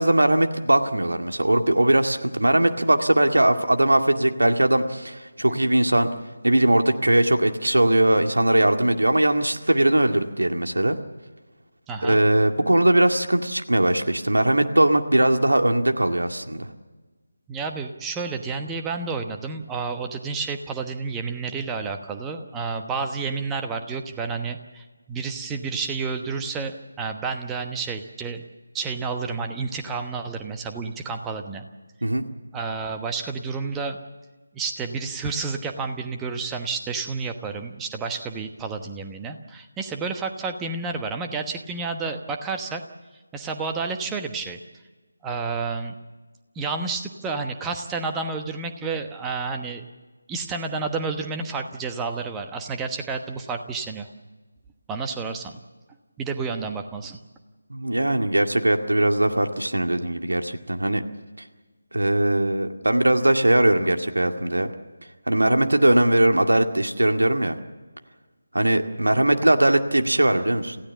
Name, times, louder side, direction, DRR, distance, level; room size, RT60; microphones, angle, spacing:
voice 1, 0.0-6.1 6.4-11.0 12.0-16.7 32.0-32.2 57.7-61.0 61.9-64.7 65.3-67.6 68.5-70.8, right 1 dB, 65° right, 5 dB, 2.1 m, -20 dB
voice 2, 11.9-12.2 17.5-28.4 28.7-31.6 32.5-34.0 34.5-42.8 43.3-44.6 45.2-45.9 46.5-49.8 50.3-54.1 54.9-55.6 56.2-57.2, right 4 dB, 10° right, 4 dB, 1.1 m, -30 dB
28.0 x 16.0 x 7.2 m, 1.3 s
figure-of-eight pair, 160°, 0 cm